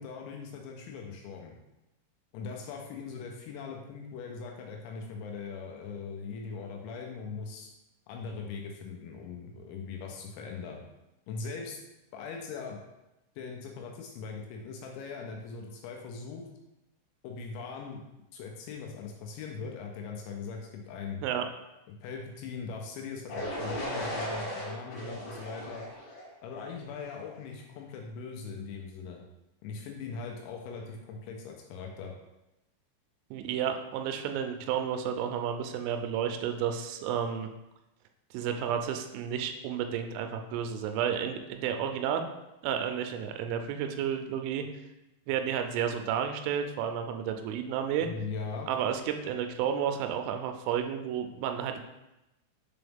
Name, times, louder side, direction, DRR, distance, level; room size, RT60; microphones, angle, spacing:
voice 1, 0.0-1.6 2.3-7.7 8.1-10.8 11.3-11.8 12.1-12.8 13.4-16.4 17.2-18.0 18.3-21.2 21.9-25.8 26.4-29.2 29.6-32.1 48.0-48.7, left 5 dB, 80° left, 1 dB, 2.9 m, -40 dB
sound 1, 23.3-27.2, equal, 65° left, 2.9 m, -37 dB
voice 2, 33.3-37.5 38.3-42.2 42.6-44.6 45.3-48.1 48.7-51.8, right 8 dB, 85° right, 6 dB, 3.0 m, -31 dB
6.9 x 3.9 x 3.5 m, 0.94 s
omnidirectional pair, 5.7 m